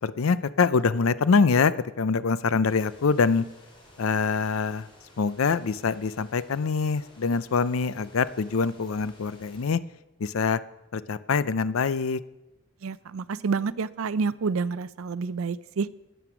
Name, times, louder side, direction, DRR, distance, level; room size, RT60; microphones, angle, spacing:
voice 1, 0.0-3.5 4.0-4.9 5.2-9.8 10.2-10.6 10.9-12.2, left 5 dB, 80° left, 16 dB, 0.5 m, -24 dB
sound 1, 2.6-9.6, left 1 dB, 25° left, 3.1 m, -54 dB
voice 2, 12.8-15.9, right 5 dB, 80° right, 18 dB, 0.4 m, -28 dB
13.0 x 9.3 x 6.0 m, 0.98 s
head